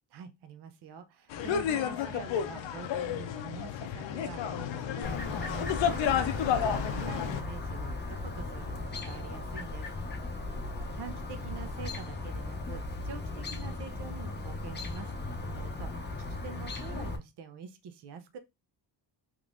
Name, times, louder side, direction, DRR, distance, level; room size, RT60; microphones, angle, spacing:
voice 1, 0.1-9.9 11.0-18.4, right 6 dB, 65° right, 0.6 m, -46 dB
sound 1, 1.3-7.4, left 8 dB, 85° left, 0.6 m, -31 dB
Chirp tweet, 5.0-17.2, left 2 dB, 25° left, 0.6 m, -37 dB
3.6 x 3.0 x 2.4 m
cardioid pair, 110°, 44 cm